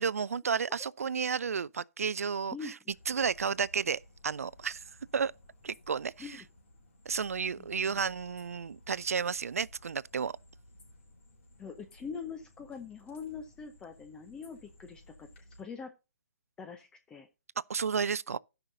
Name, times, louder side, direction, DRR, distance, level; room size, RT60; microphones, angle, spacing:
voice 1, 0.0-2.7 3.1-4.8 5.1-5.3 5.6-6.4 7.1-10.3 17.7-18.4, right 6 dB, 65° right, 0.3 m, -32 dB
sound 1, 2.9-15.6, left 1 dB, 50° left, 3.8 m, -57 dB
voice 2, 7.6-8.0 11.6-15.3 15.6-15.9 16.6-17.3, left 5 dB, 10° left, 0.6 m, -43 dB
16.5 x 5.6 x 2.6 m
figure-of-eight pair, 130°, 8 cm